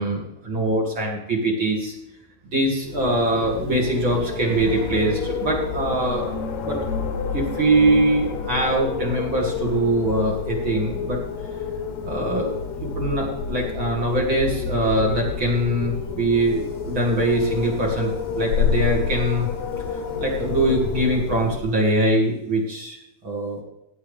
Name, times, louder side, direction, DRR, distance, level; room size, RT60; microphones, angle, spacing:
voice 1, 0.0-1.9 2.4-6.3 6.6-6.8 7.3-11.2 12.0-19.5 20.2-23.0 23.2-23.6, right 1 dB, 35° right, -3 dB, 2.2 m, -23 dB
Wind, 2.8-21.8, left 6 dB, 80° left, 1.6 m, -29 dB
16.5 x 8.4 x 3.4 m, 0.85 s
omnidirectional pair, 5.0 m